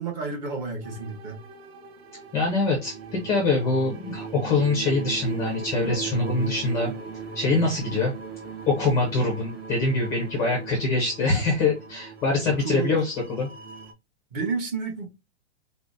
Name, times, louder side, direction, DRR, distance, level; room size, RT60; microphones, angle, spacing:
voice 1, 0.0-1.4 7.9-8.0 11.3-11.4 12.5-12.9 14.3-15.1, right 4 dB, 30° right, 1.0 m, -31 dB
sound 1, 0.8-13.9, right 5 dB, 60° right, 1.0 m, -38 dB
voice 2, 2.3-6.9 7.3-8.1 8.7-13.5, left 3 dB, 10° left, 0.5 m, -24 dB
4.9 x 2.1 x 2.5 m
hypercardioid pair, 155°, 35 cm